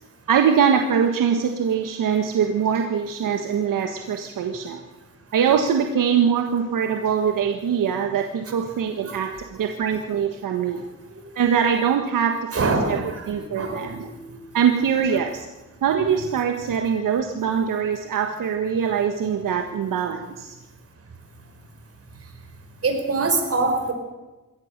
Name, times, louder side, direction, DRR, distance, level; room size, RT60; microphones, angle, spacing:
voice 1, 0.3-4.8 5.3-9.3 9.6-10.8 11.3-13.0 13.3-14.1 14.5-15.5 15.8-20.6, right 7 dB, 80° right, 4 dB, 1.5 m, -22 dB
voice 2, 9.0-9.4 10.7-10.8 11.1-11.2 12.5-14.4 22.8-23.9, right 3 dB, 45° right, 4 dB, 5.2 m, -25 dB
22.5 x 17.0 x 6.7 m, 1.1 s
cardioid pair, 105°, 32 cm